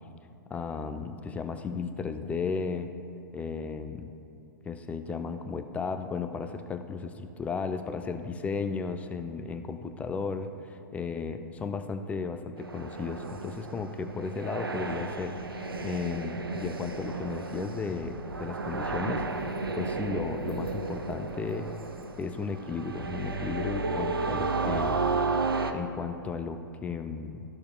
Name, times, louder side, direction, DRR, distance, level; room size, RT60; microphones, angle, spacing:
voice 1, 0.5-2.9 3.3-4.1 4.7-10.5 10.9-21.7 22.2-25.0 25.7-27.4, left 5 dB, 10° left, 8 dB, 0.4 m, -34 dB
sound 1, 12.6-25.7, right 3 dB, 90° right, 0.6 m, -33 dB
13.5 x 6.6 x 2.3 m, 2.5 s
figure-of-eight pair, 115°, 12 cm